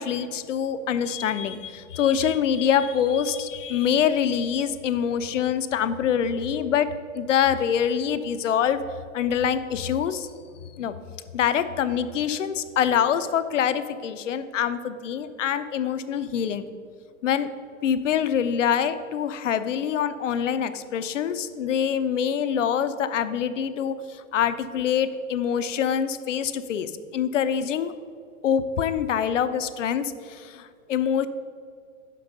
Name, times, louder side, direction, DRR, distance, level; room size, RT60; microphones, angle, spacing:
voice 1, 0.0-6.9 7.1-8.8 9.1-10.3 10.8-10.9 11.3-16.6 17.2-17.5 17.8-27.9 28.4-31.3, left 8 dB, 65° left, 12 dB, 0.5 m, -25 dB
5.8 x 5.3 x 5.2 m, 2.2 s
figure-of-eight pair, 100°, 41 cm